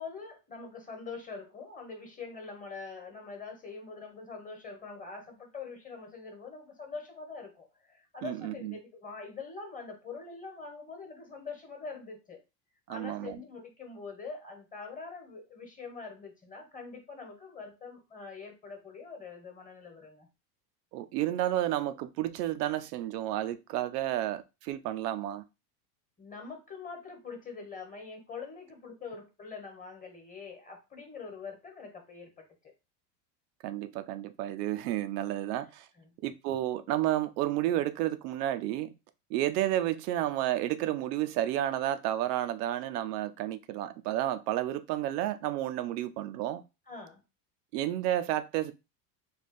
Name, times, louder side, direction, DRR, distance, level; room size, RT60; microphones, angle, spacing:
voice 1, 0.0-12.4 12.9-20.3 26.2-32.7 36.0-36.1 46.9-47.2, left 4 dB, 15° left, 1.2 m, -44 dB
voice 2, 8.2-8.7 12.9-13.4 20.9-25.4 33.6-35.9 36.2-38.9 39.3-46.6 47.7-48.7, right 13 dB, 80° right, 0.6 m, -31 dB
3.3 x 2.3 x 4.2 m
supercardioid pair, 120°, 47 cm